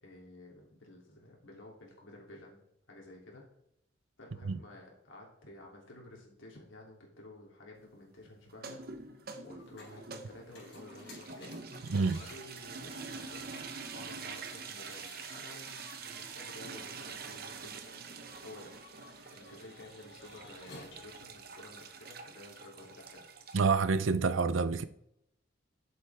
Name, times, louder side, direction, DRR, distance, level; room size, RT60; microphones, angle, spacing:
voice 1, 0.0-2.6 2.9-3.4 4.2-8.8 9.1-9.2 9.4-11.5 12.2-18.1 18.4-18.7 19.3-23.3, left 2 dB, 80° left, 3.0 m, -52 dB
sound 1, 8.5-23.6, right 5 dB, 50° right, 0.9 m, -46 dB
sound 2, 9.6-22.9, left 2 dB, 60° left, 3.9 m, -55 dB
voice 2, 11.9-12.2 23.5-24.8, right 4 dB, 85° right, 0.6 m, -27 dB
11.0 x 7.7 x 3.5 m
head